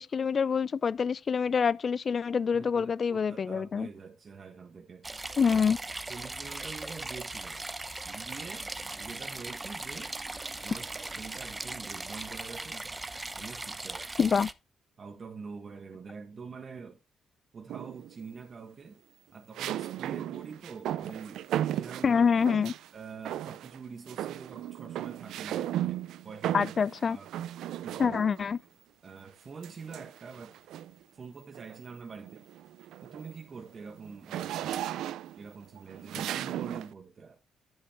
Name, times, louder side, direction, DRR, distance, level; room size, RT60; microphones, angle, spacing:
voice 1, 0.0-3.9 5.4-5.8 14.2-14.5 22.0-22.7 26.5-27.2 28.0-28.6, left 6 dB, 45° left, 0.4 m, -26 dB
voice 2, 2.5-5.1 6.1-7.6 8.0-10.1 10.6-12.9 13.4-14.3 15.0-17.0 17.5-19.0 19.3-22.5 22.9-26.7 27.0-27.3 27.8-28.2 29.0-30.6 31.1-32.5 33.0-34.8 35.3-37.4, right 5 dB, 40° right, 1.5 m, -45 dB
sound 1, 5.0-14.5, right 2 dB, 20° right, 0.8 m, -39 dB
sound 2, 17.7-18.2 19.6-22.9 23.3-23.8 24.1-28.5 29.6-31.0 31.5-31.8 32.2-36.9, right 12 dB, 80° right, 0.5 m, -36 dB
10.0 x 8.0 x 3.5 m
cardioid pair, 90°, 0 cm